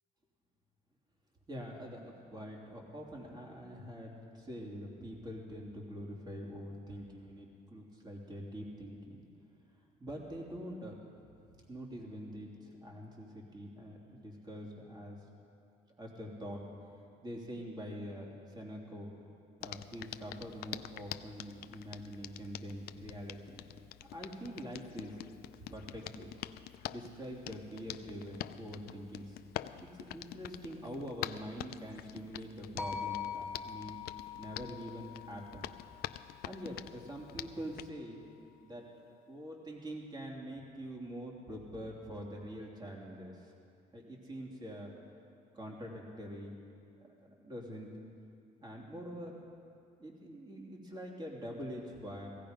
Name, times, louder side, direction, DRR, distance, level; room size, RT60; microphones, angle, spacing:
voice 1, 1.5-9.2 10.0-11.0 11.5-15.2 16.0-16.6 17.2-19.1 19.6-23.6 24.1-25.2 25.7-26.3 26.9-29.4 29.8-34.0 34.4-35.6 36.4-38.2 38.6-38.9 39.3-43.5 43.9-44.9 45.5-46.5 47.0-47.9 48.6-49.3 50.0-52.3, equal, 25° right, -1 dB, 3.1 m, -45 dB
Hands, 19.6-37.9, left 13 dB, 70° left, 0.5 m, -46 dB
sound 1, 32.8-37.0, left 7 dB, ahead, 2.7 m, -43 dB
16.5 x 16.5 x 5.2 m, 2.5 s
cardioid pair, 110°, 17 cm